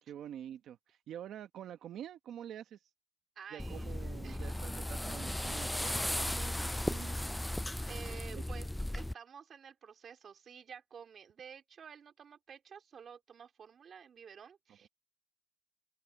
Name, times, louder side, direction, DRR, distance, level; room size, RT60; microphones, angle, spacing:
voice 1, 0.0-2.9 3.5-7.2 8.3-8.4, right 10 dB, 75° right, 1.1 m, -47 dB
voice 2, 3.3-3.9 4.2-4.5 6.1-6.8 7.9-14.9, right 7 dB, 55° right, 3.2 m, -52 dB
sound 1, 3.6-9.1, left 1 dB, 5° left, 0.4 m, -36 dB
open air
cardioid pair, 90°, 0 cm